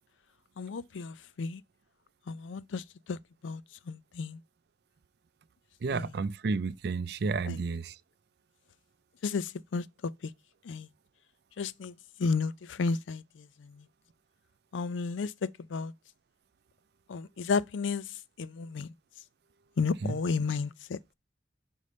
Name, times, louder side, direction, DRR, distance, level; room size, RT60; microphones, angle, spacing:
voice 1, 0.6-1.6 2.3-3.2 3.4-4.4 5.9-6.1 7.4-7.6 9.2-10.3 10.6-10.9 11.6-11.9 12.2-13.9 14.7-15.9 17.1-18.9 19.8-21.0, left 4 dB, 85° left, 0.4 m, -33 dB
voice 2, 5.8-7.9 20.0-20.2, right 4 dB, 60° right, 0.4 m, -31 dB
5.3 x 5.3 x 5.0 m
head